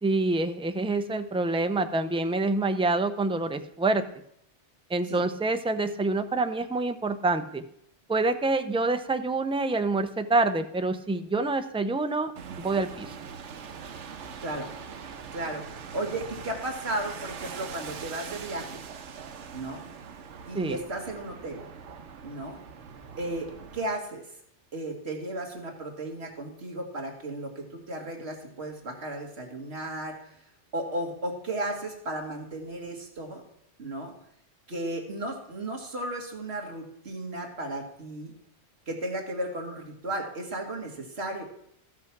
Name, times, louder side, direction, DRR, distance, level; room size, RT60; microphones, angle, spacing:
voice 1, 0.0-4.0 4.9-7.6 8.1-12.3 12.6-13.1 20.5-20.8, right 2 dB, 10° right, 9 dB, 0.3 m, -26 dB
sound 1, 12.4-23.8, right 6 dB, 90° right, 1.2 m, -42 dB
voice 2, 14.1-14.7 15.3-15.6 15.9-18.8 19.5-19.9 20.5-21.6 22.2-22.6 23.2-24.3 24.7-30.4 30.7-33.4 33.8-34.1 34.7-38.3 38.9-41.4, right 1 dB, 65° right, 1 dB, 2.2 m, -34 dB
13.0 x 6.2 x 5.9 m, 0.72 s
omnidirectional pair, 1.2 m